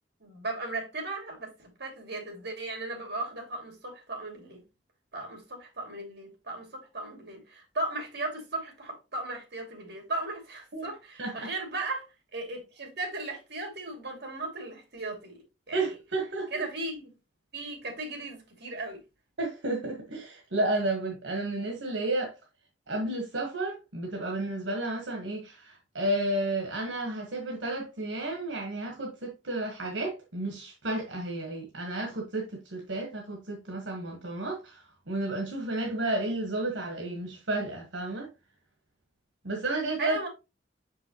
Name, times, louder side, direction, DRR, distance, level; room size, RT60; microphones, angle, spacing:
voice 1, 0.2-4.6 5.1-12.0 12.3-15.4 15.7-16.0 16.5-17.1 17.5-19.0 40.0-40.3, right 2 dB, 60° right, 2.6 m, -36 dB
voice 2, 11.2-11.5 15.7-16.7 19.4-22.3 22.9-38.3 39.4-40.2, right 2 dB, 80° right, 1.3 m, -32 dB
5.9 x 5.4 x 3.0 m
head